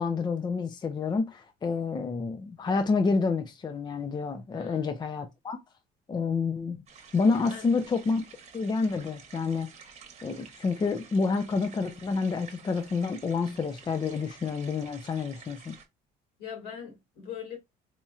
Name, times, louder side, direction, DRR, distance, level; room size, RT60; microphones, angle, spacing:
voice 1, 0.0-5.6 6.1-6.8 7.1-8.2 8.5-9.7 10.2-15.8, left 4 dB, 25° left, 0.5 m, -28 dB
voice 2, 4.5-5.0 7.5-7.7 16.4-17.6, left 7 dB, 75° left, 2.1 m, -41 dB
sound 1, 6.9-15.8, right 6 dB, 40° right, 1.0 m, -51 dB
4.2 x 2.8 x 2.4 m
cardioid pair, 110°, 17 cm